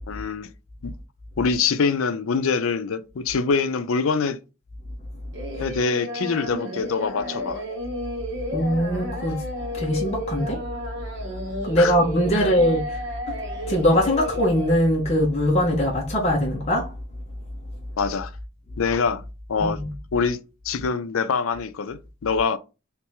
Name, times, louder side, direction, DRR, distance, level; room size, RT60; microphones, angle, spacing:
voice 1, 0.1-0.5 0.8-0.9 1.4-4.4 5.6-7.6 11.8-11.9 12.3-12.5 18.0-18.3 18.8-19.2 19.5-19.8 20.1-20.4 20.6-22.6, left 5 dB, 80° left, 0.5 m, -24 dB
Singing, 5.3-14.8, left 1 dB, 60° right, 1.1 m, -32 dB
voice 2, 8.5-9.4 9.7-10.6 11.6-13.0 13.3-13.4 13.7-16.9 19.6-19.9, equal, 30° left, 1.0 m, -21 dB
3.3 x 3.2 x 3.0 m
head